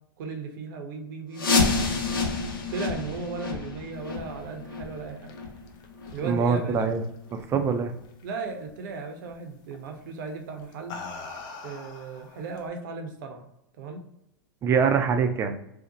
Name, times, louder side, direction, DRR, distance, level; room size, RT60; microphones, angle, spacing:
voice 1, 0.2-1.7 2.7-5.3 6.1-7.0 8.2-11.0 11.6-13.4 13.8-14.0, right 4 dB, 60° right, 4 dB, 0.6 m, -36 dB
sound 1, 1.3-6.9 7.3-7.4 7.9-8.0 8.6-8.7 9.3-9.4, left 4 dB, 80° left, 0.7 m, -29 dB
sound 2, 4.8-7.7 8.0-8.5 9.7-9.9 10.6-12.7, left 4 dB, 35° left, 0.5 m, -43 dB
voice 2, 6.2-7.0 7.3-7.9 14.6-15.5, right 6 dB, 25° right, 7 dB, 0.4 m, -24 dB
2.7 x 2.1 x 3.8 m, 0.80 s
hypercardioid pair, 105°, 12 cm